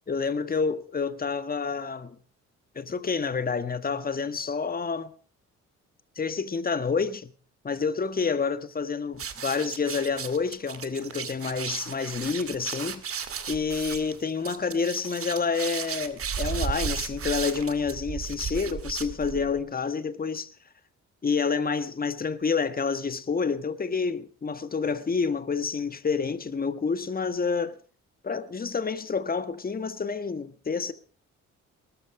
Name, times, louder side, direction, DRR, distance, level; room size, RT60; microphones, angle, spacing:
voice 1, 0.1-2.2 2.7-5.1 6.1-7.3 7.6-13.0 13.5-20.5 21.2-27.8 28.2-30.9, left 5 dB, 30° left, 1.6 m, -28 dB
sound 1, 9.1-19.6, right 7 dB, 50° right, 2.1 m, -34 dB
19.5 x 13.5 x 4.9 m
cardioid pair, 90°, 30 cm